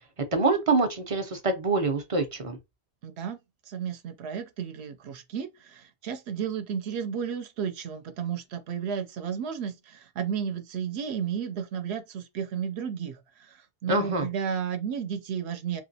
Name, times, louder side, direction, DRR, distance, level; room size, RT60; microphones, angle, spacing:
voice 1, 0.3-2.6 13.9-14.3, right 3 dB, 45° right, 0.5 m, -25 dB
voice 2, 3.0-3.4 3.7-15.8, right 7 dB, 80° right, 0.8 m, -33 dB
2.9 x 2.5 x 2.6 m
omnidirectional pair, 1.1 m